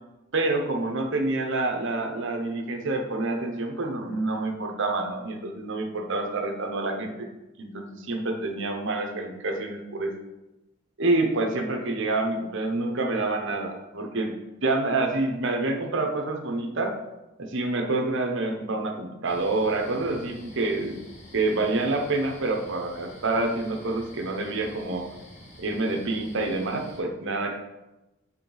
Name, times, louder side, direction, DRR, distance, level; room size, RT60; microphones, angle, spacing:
voice 1, 0.3-7.3 7.6-10.1 11.0-14.3 14.6-16.9 17.4-21.0 21.3-25.1 25.6-27.6, right 2 dB, 65° right, 3 dB, 0.9 m, -27 dB
sound 1, 19.2-27.0, equal, 35° left, 1.9 m, -48 dB
7.5 x 4.4 x 3.9 m, 1.0 s
head